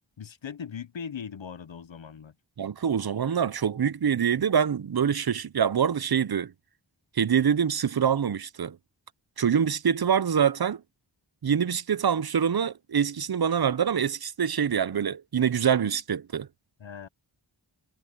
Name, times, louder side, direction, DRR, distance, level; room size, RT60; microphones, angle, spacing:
voice 1, 0.2-2.3 16.8-17.1, left 7 dB, 85° left, 0.8 m, -39 dB
voice 2, 2.6-6.5 7.2-8.8 9.4-10.8 11.4-16.5, right 7 dB, 55° right, 0.6 m, -25 dB
wide cardioid pair, 50°, 45 cm